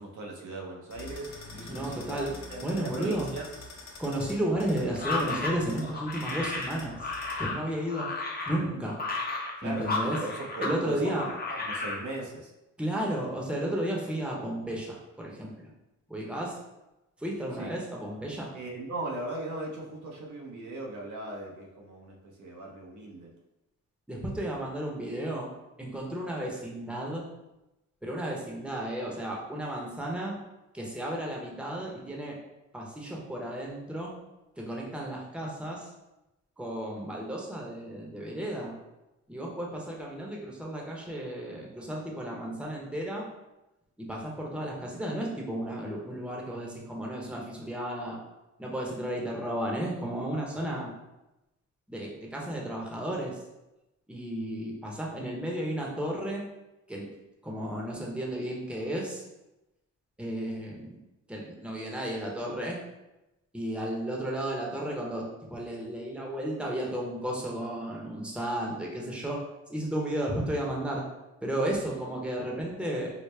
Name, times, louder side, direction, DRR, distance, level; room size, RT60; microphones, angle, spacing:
voice 1, 0.0-2.2 2.5-3.5 9.6-11.1 11.5-12.5 17.6-17.7 18.5-23.3, right 2 dB, 75° right, -1 dB, 0.8 m, -39 dB
sound 1, 0.9-7.5, left 3 dB, 60° left, 0.9 m, -46 dB
voice 2, 1.7-2.3 2.6-3.3 4.0-7.1 7.4-8.1 8.5-9.0 9.6-10.2 10.6-11.2 12.8-15.7 16.1-16.6 17.2-18.5 24.1-25.5 25.8-27.2 28.0-30.4 30.7-32.4 32.7-34.1 34.6-35.9 36.6-38.7 39.3-43.3 44.0-48.2 48.6-50.9 51.9-53.4 54.1-56.4 56.9-57.1 57.4-59.2 60.2-60.9 61.3-62.8 63.5-69.4 69.7-71.0 71.4-73.1, right 1 dB, 5° right, -2 dB, 0.8 m, -33 dB
sound 2, 4.9-10.8 11.0-12.0, left 3 dB, 30° left, 0.8 m, -33 dB
4.8 x 2.0 x 3.2 m, 0.97 s
cardioid pair, 90°, 31 cm